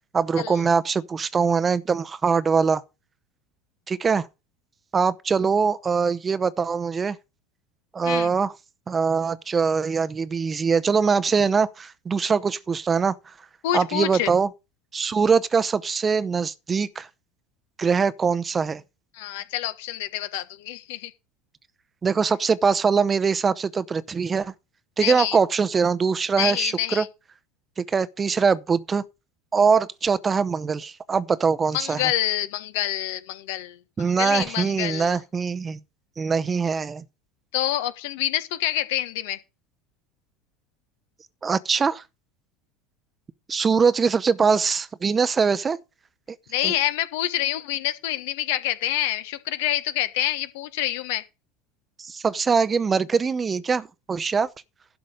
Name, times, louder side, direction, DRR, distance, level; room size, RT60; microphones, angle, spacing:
voice 1, 0.1-2.8 3.9-4.3 4.9-7.2 7.9-8.5 8.9-13.2 13.7-14.5 14.9-17.1 17.8-18.8 22.0-24.5 25.0-27.0 27.8-29.0 29.5-32.1 34.0-35.8 36.2-37.0 41.4-42.0 43.5-45.8 46.6-46.7 52.0-54.5, right 5 dB, 25° right, 0.7 m, -22 dB
voice 2, 13.6-14.3 19.1-21.1 25.0-25.4 26.4-27.1 31.7-35.2 37.5-39.4 46.5-51.2, left 13 dB, 70° left, 1.2 m, -27 dB
12.0 x 5.1 x 6.5 m
hypercardioid pair, 80°, 0 cm